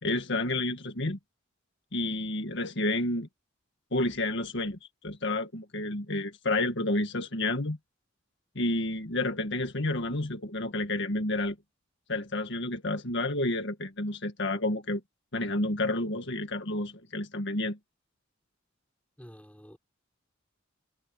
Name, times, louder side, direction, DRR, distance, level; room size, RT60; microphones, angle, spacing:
voice 1, 0.0-1.2 1.9-3.3 3.9-7.8 8.6-11.6 12.1-15.0 15.3-17.8, left 2 dB, 60° left, 1.9 m, -30 dB
voice 2, 19.2-19.8, equal, 5° left, 4.2 m, -49 dB
head